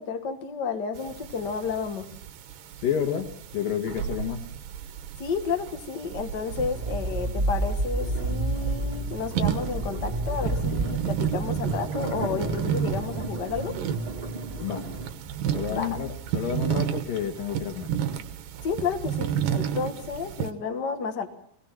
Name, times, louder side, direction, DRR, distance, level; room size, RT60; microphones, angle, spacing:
voice 1, 0.0-2.1 5.2-13.8 15.7-15.9 18.6-21.3, left 5 dB, 45° left, 6 dB, 1.4 m, -31 dB
sound 1, 1.0-20.5, right 9 dB, 75° right, 2.7 m, -32 dB
voice 2, 2.8-4.4 14.6-14.9 15.5-17.9, left 8 dB, 75° left, 5 dB, 3.4 m, -30 dB
sound 2, 6.4-15.1, right 2 dB, 15° right, 2.5 m, -31 dB
24.5 x 18.5 x 6.0 m, 0.67 s
omnidirectional pair, 4.1 m